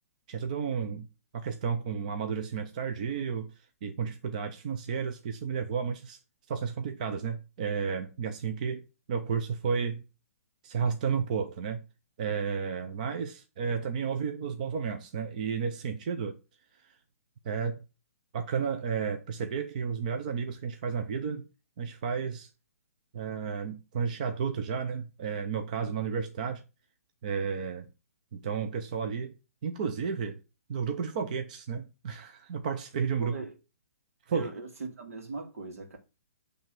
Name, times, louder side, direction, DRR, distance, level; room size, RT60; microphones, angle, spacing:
voice 1, 0.3-1.1 1.3-3.5 3.8-6.2 6.5-10.0 10.6-11.8 12.2-16.4 17.4-17.8 18.3-21.5 21.8-22.5 23.1-26.6 27.2-27.9 28.3-29.3 29.6-30.4 30.7-33.4 34.3-34.5, right 6 dB, 30° right, 0.6 m, -32 dB
voice 2, 33.2-33.5 34.3-36.0, right 3 dB, 75° right, 2.0 m, -39 dB
7.1 x 3.3 x 6.0 m
hypercardioid pair, 175°, 8 cm